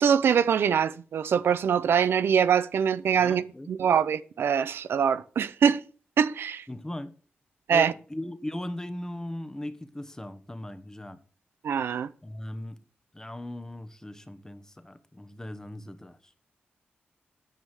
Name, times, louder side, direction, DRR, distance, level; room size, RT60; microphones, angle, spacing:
voice 1, 0.0-5.8 6.2-6.6 7.7-7.9 11.6-12.1, right 7 dB, 90° right, 0.5 m, -23 dB
voice 2, 3.2-3.7 6.7-7.1 7.7-11.2 12.2-12.8 13.1-16.2, left 1 dB, 15° left, 1.1 m, -38 dB
9.3 x 5.5 x 6.1 m
cardioid pair, 80°, 4 cm